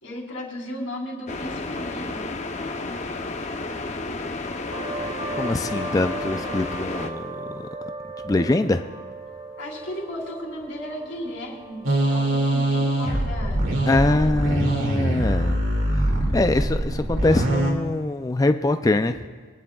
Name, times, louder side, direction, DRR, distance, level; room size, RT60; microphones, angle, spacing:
voice 1, 0.0-2.3 9.6-13.6 14.0-14.3, left 1 dB, 65° left, -1 dB, 3.2 m, -35 dB
sound 1, 1.3-7.1, left 3 dB, 35° left, 0.7 m, -32 dB
sound 2, 4.7-16.0, right 2 dB, 30° right, 1.4 m, -38 dB
voice 2, 5.4-7.7 8.2-8.8 13.9-15.6 16.0-19.2, left 2 dB, 20° left, 8 dB, 0.4 m, -23 dB
sound 3, 11.8-17.7, right 1 dB, 80° right, 2.3 m, -23 dB
25.0 x 10.0 x 2.3 m, 1.5 s
head